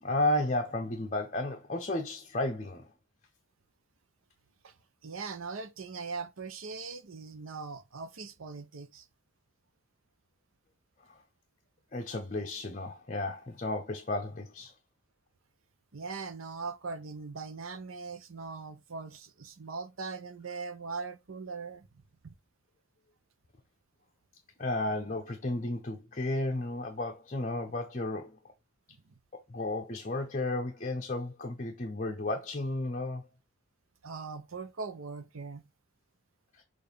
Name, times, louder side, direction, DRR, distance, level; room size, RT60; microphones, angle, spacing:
voice 1, 0.0-2.9 11.9-14.7 24.6-28.4 29.5-33.3, left 2 dB, 35° left, 0.8 m, -33 dB
voice 2, 5.0-9.1 15.9-21.9 22.2-22.3 29.0-29.1 34.0-35.7, right 4 dB, 90° right, 0.8 m, -40 dB
6.8 x 2.7 x 5.2 m
head